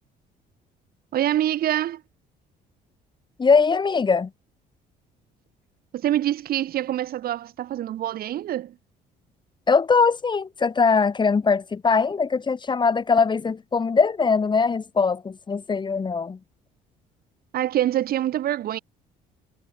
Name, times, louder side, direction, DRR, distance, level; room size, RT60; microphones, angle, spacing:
voice 1, 1.1-2.0 5.9-8.7 17.5-18.8, right 12 dB, 65° right, 2.4 m, -25 dB
voice 2, 3.4-4.3 9.7-16.4, left 5 dB, 25° left, 2.5 m, -21 dB
cardioid pair, 110°, 17 cm